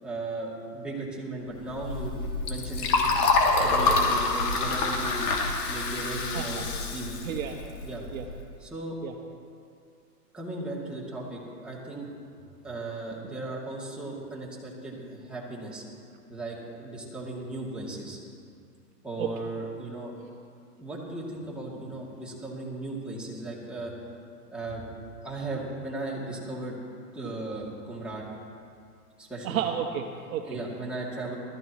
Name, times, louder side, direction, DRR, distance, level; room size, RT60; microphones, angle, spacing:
voice 1, 0.0-3.2 3.6-5.3 5.7-7.2 7.8-8.0 8.6-9.0 10.3-12.1 12.6-15.8 16.3-18.2 19.0-20.2 20.8-23.9 24.5-24.8 25.2-26.8 27.1-28.2 29.2-29.6 30.4-31.4, right 2 dB, ahead, -6 dB, 2.6 m, -36 dB
Liquid, 1.6-8.3, left 3 dB, 60° left, 2.9 m, -26 dB
voice 2, 6.3-6.6 7.2-7.6 8.1-8.2 9.0-9.1 19.2-19.3 29.4-30.5, right 9 dB, 55° right, 4 dB, 1.2 m, -31 dB
20.0 x 14.0 x 3.1 m, 2.4 s
hypercardioid pair, 135°, 50 cm